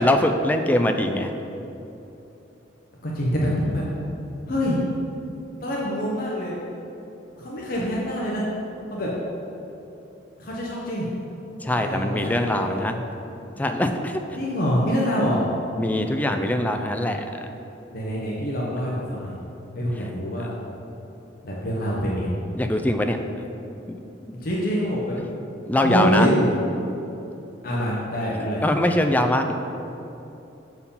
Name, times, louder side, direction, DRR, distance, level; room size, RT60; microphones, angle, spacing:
voice 1, 0.0-1.3 3.7-3.9 11.6-13.1 13.6-14.2 15.8-17.3 22.6-23.2 23.9-24.3 25.6-26.4 28.6-29.5, left 1 dB, 10° left, 5 dB, 0.3 m, -23 dB
voice 2, 3.0-3.8 4.5-4.8 5.6-6.6 7.4-8.5 8.9-9.1 10.4-11.1 11.8-12.8 14.4-15.4 17.9-19.3 19.7-20.5 21.4-22.3 24.4-25.2 25.8-26.5 27.6-28.6, equal, 50° left, -4 dB, 0.9 m, -25 dB
6.9 x 4.6 x 5.4 m, 3.0 s
head